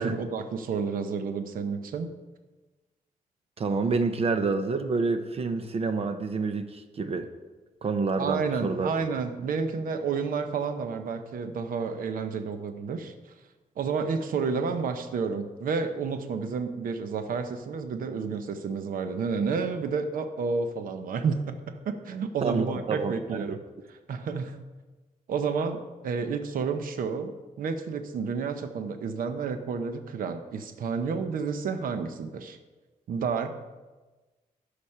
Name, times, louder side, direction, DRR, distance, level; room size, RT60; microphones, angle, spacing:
voice 1, 0.0-2.1 8.2-13.1 13.8-23.6 23.9-24.6 25.3-27.3 27.6-32.6 33.1-33.5, right 5 dB, 75° right, 8 dB, 0.8 m, -30 dB
voice 2, 3.6-7.3 7.8-8.9 22.4-23.4, right 4 dB, 45° right, 9 dB, 0.7 m, -28 dB
13.0 x 5.2 x 5.6 m, 1.2 s
wide cardioid pair, 130°, 14 cm